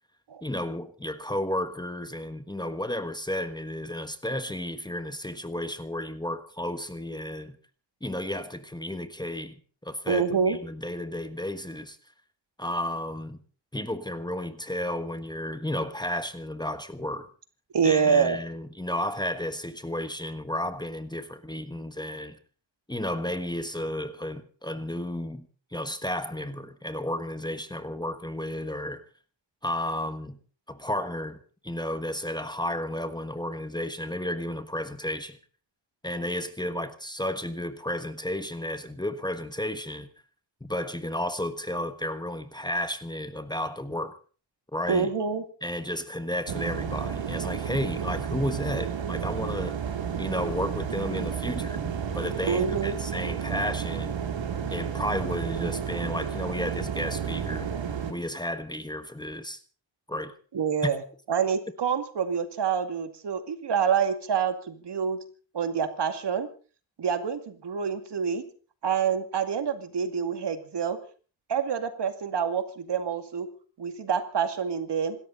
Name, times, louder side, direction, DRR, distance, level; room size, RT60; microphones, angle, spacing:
voice 1, 0.4-7.6 8.0-9.6 9.8-12.0 12.6-13.4 13.7-17.3 17.8-22.4 22.9-25.5 25.7-29.0 29.6-30.4 30.7-31.4 31.6-35.4 36.0-40.1 40.6-44.1 44.7-45.1 45.6-49.8 50.2-51.8 52.1-54.1 54.7-57.7 58.1-59.6 60.1-60.3 60.8-60.9, left 1 dB, 10° left, 1.3 m, -32 dB
voice 2, 10.1-10.6 17.7-18.4 44.9-45.4 52.5-53.0 60.5-61.0 61.3-65.2 65.5-66.5 67.0-68.4 68.8-71.0 71.5-73.5 73.8-75.2, right 6 dB, 65° right, 2.3 m, -27 dB
sound 1, 46.5-58.1, right 7 dB, 80° right, 2.9 m, -31 dB
27.0 x 13.5 x 4.0 m
wide cardioid pair, 135°, 45 cm